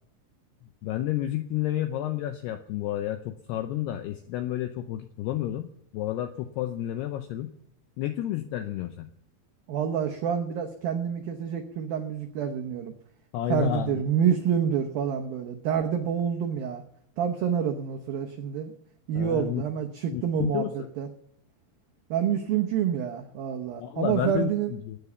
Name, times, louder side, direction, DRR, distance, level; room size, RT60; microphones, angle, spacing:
voice 1, 0.8-5.7 5.9-7.5 8.0-9.1 13.3-14.0 19.1-19.6 20.1-20.9 23.8-25.0, left 13 dB, 90° left, 8 dB, 2.3 m, -30 dB
voice 2, 9.7-12.9 13.5-16.8 17.2-18.7 19.1-21.1 22.1-24.7, right 8 dB, 85° right, 3 dB, 2.0 m, -28 dB
18.0 x 9.7 x 7.1 m, 0.72 s
omnidirectional pair, 5.6 m